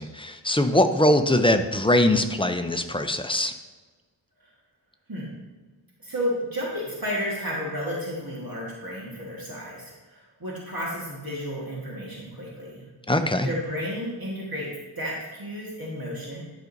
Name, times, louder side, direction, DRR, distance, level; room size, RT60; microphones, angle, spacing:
voice 1, 0.0-3.5 13.1-13.5, left 1 dB, 10° left, 7 dB, 0.5 m, -22 dB
voice 2, 6.0-12.8 13.4-16.4, equal, 50° right, -5 dB, 1.6 m, -32 dB
11.0 x 5.2 x 2.6 m, 1.3 s
wide cardioid pair, 60°, 46 cm